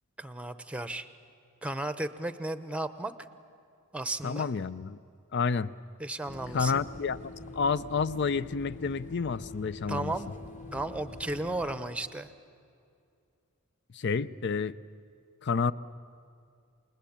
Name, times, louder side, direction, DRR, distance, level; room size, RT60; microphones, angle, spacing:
voice 1, 0.2-1.1 1.6-3.1 3.9-4.5 6.0-6.8 9.9-12.3, right 2 dB, 5° right, 12 dB, 0.8 m, -34 dB
voice 2, 4.2-5.0 5.3-5.7 6.5-10.1 13.9-14.8 15.4-15.7, left 5 dB, 55° left, 17 dB, 0.5 m, -29 dB
sound 1, 6.2-11.8, left 2 dB, 35° left, 2.2 m, -45 dB
28.5 x 20.5 x 8.7 m, 2.4 s
head